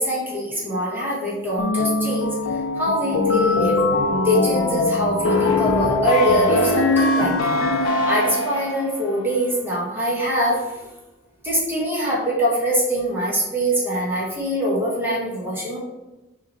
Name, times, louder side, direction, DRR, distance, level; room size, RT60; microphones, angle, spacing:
voice 1, 0.0-3.8 4.2-10.8 11.4-15.8, equal, 10° right, -5 dB, 1.1 m, -23 dB
sound 1, 1.6-8.9, left 2 dB, 85° left, 0.5 m, -21 dB
5.8 x 2.9 x 2.9 m, 1.1 s
head